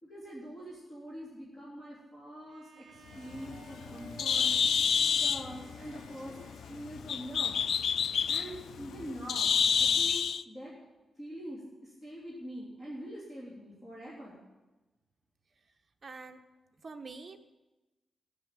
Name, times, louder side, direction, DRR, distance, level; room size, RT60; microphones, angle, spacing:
voice 1, 0.0-4.6 5.1-7.6 8.2-10.8 11.1-14.4, equal, 25° left, -6 dB, 3.1 m, -44 dB
Bowed string instrument, 2.5-7.5, right 1 dB, 50° right, 1.2 m, -54 dB
Bird, 3.1-10.4, left 7 dB, 70° left, 0.4 m, -29 dB
voice 2, 16.0-16.4 16.8-17.4, right 4 dB, 30° right, 5 dB, 1.0 m, -45 dB
17.0 x 7.5 x 7.4 m, 1.1 s
wide cardioid pair, 175°, 0 cm